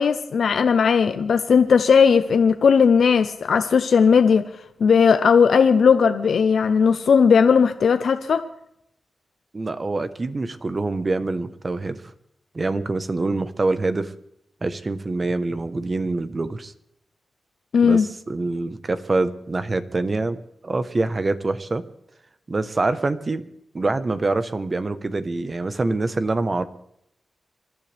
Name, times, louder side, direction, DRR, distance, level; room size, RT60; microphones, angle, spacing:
voice 1, 0.0-4.4 4.8-8.4 17.7-18.1, left 6 dB, 80° left, 9 dB, 0.7 m, -17 dB
voice 2, 9.5-12.0 12.5-14.1 14.6-16.7 17.8-21.8 22.5-23.5 23.7-26.6, right 3 dB, 40° right, 12 dB, 1.1 m, -25 dB
26.5 x 12.0 x 3.4 m, 0.76 s
cardioid pair, 75°, 0 cm